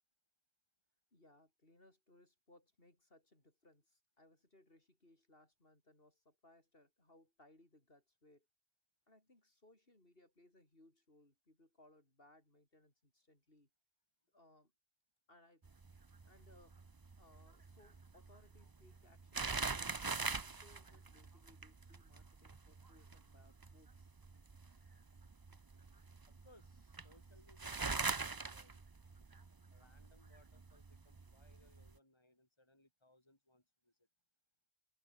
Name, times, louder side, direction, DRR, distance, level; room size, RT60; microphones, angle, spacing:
voice 1, 1.1-8.5 9.1-13.7 14.3-14.7 15.3-15.7 16.2-24.2, left 1 dB, 60° left, 5.9 m, -67 dB
sound 1, 15.6-32.0, right 4 dB, 25° right, 0.6 m, -44 dB
voice 2, 26.3-28.8 29.7-34.1, left 1 dB, 25° left, 4.2 m, -68 dB
omnidirectional pair, 1.1 m